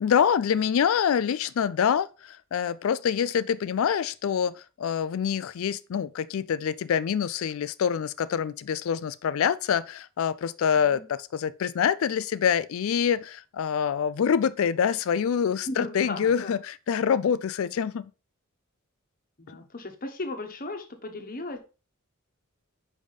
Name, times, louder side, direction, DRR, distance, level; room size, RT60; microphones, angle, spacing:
voice 1, 0.0-18.1, left 7 dB, 70° left, 0.4 m, -26 dB
voice 2, 15.7-16.6 19.4-21.6, left 2 dB, 45° left, 1.1 m, -36 dB
5.2 x 4.9 x 4.0 m
head